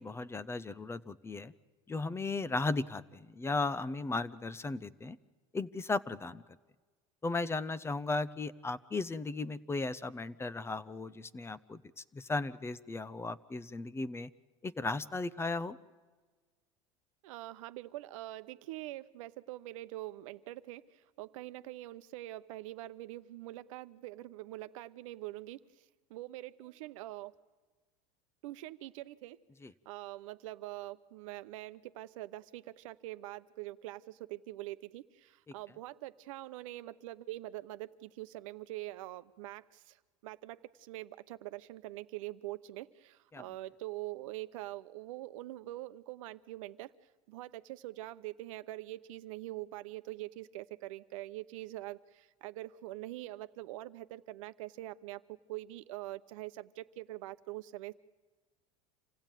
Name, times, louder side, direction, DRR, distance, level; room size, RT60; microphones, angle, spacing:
voice 1, 0.0-1.5 1.9-5.2 5.5-6.4 7.2-14.3 14.6-15.8 29.6-29.7 43.3-43.4, left 3 dB, 15° left, 17 dB, 0.8 m, -36 dB
voice 2, 17.2-20.9 21.2-25.6 26.1-27.3 28.4-29.4 29.9-40.0 40.2-46.9 47.3-55.2 55.5-57.9, right 17 dB, 80° right, 13 dB, 0.8 m, -44 dB
27.0 x 16.0 x 9.1 m, 1.4 s
supercardioid pair, 110°, 17 cm